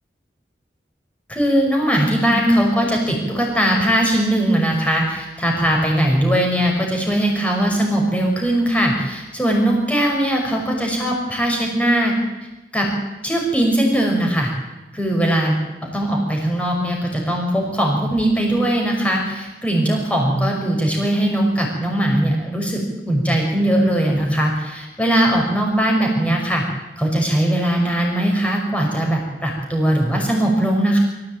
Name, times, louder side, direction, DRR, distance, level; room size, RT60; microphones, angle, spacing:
voice 1, 1.3-12.1 12.7-12.9 13.2-14.5 14.9-15.5 15.8-22.8 23.0-26.6 27.0-31.0, right 1 dB, 5° left, 0 dB, 6.0 m, -19 dB
25.0 x 15.5 x 9.1 m, 1.1 s
head